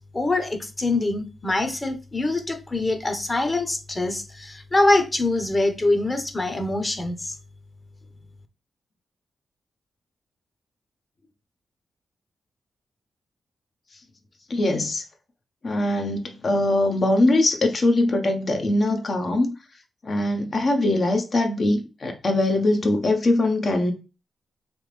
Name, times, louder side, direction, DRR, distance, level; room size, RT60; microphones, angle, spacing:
voice 1, 0.1-7.4, left 2 dB, 30° left, 1.1 m, -24 dB
voice 2, 14.5-15.0 15.6-19.5 20.0-23.9, left 2 dB, 55° left, 1.1 m, -22 dB
3.5 x 3.2 x 3.3 m
supercardioid pair, 40°, 0 cm